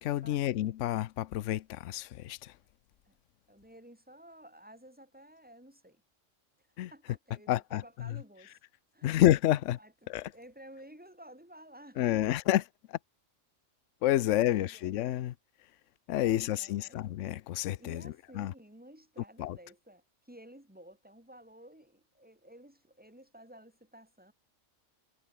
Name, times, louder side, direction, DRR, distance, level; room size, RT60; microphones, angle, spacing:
voice 1, 0.0-2.6 6.8-6.9 7.5-8.2 9.0-9.8 10.1-10.3 12.0-12.6 12.9-13.0 14.0-15.3 16.1-18.5 19.4-19.6, left 13 dB, 75° left, 1.0 m, -29 dB
voice 2, 3.5-6.0 6.6-8.6 8.9-9.3 9.8-12.3 14.2-15.0 16.2-17.0 17.8-24.3, right 1 dB, 5° right, 3.1 m, -54 dB
omnidirectional pair, 1.3 m